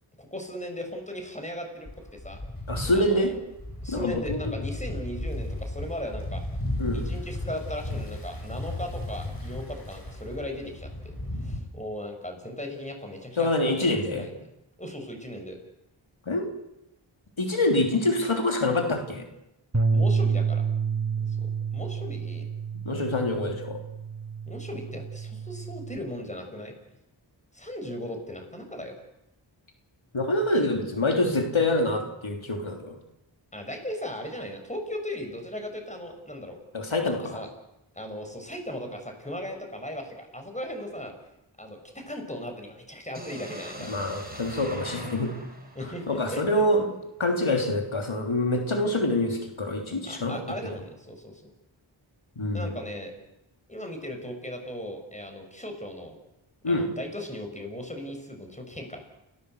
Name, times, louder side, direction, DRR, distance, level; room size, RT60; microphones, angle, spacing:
voice 1, 0.2-2.4 2.9-3.3 3.8-6.4 6.9-11.1 11.4-14.5 14.8-15.6 19.9-20.7 21.2-22.5 24.5-26.7 27.5-29.0 33.5-36.6 37.0-37.5 38.0-41.1 41.6-44.0 45.8-46.4 50.0-51.5 52.5-53.1 53.7-56.2 56.6-59.0, left 1 dB, 15° left, 4 dB, 6.9 m, -37 dB
sound 1, 1.9-11.6, left 1 dB, 45° left, 6.4 m, -34 dB
voice 2, 2.7-3.3 3.9-4.5 6.8-7.0 13.4-14.3 16.3-16.5 17.4-19.3 22.9-23.8 30.1-33.0 36.7-37.4 43.9-45.3 46.1-46.8 47.2-50.4 52.4-52.7 56.6-56.9, left 1 dB, 85° left, 3 dB, 3.5 m, -26 dB
Bass guitar, 19.7-26.0, right 5 dB, 35° right, 3.6 m, -29 dB
sound 2, 43.1-47.1, right 1 dB, 20° right, 6.1 m, -42 dB
30.0 x 18.0 x 8.4 m, 0.88 s
wide cardioid pair, 40°, 47 cm